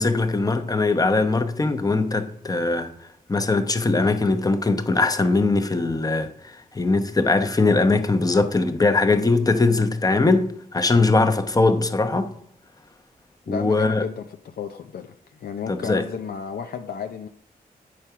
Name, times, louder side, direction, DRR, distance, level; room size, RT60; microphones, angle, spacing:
voice 1, 0.0-2.9 3.3-6.3 6.7-12.3 13.5-14.0 15.7-16.0, left 3 dB, 25° left, 1.0 m, -21 dB
voice 2, 13.5-17.3, left 6 dB, 80° left, 0.6 m, -33 dB
8.7 x 4.7 x 5.7 m
cardioid pair, 80°, 16 cm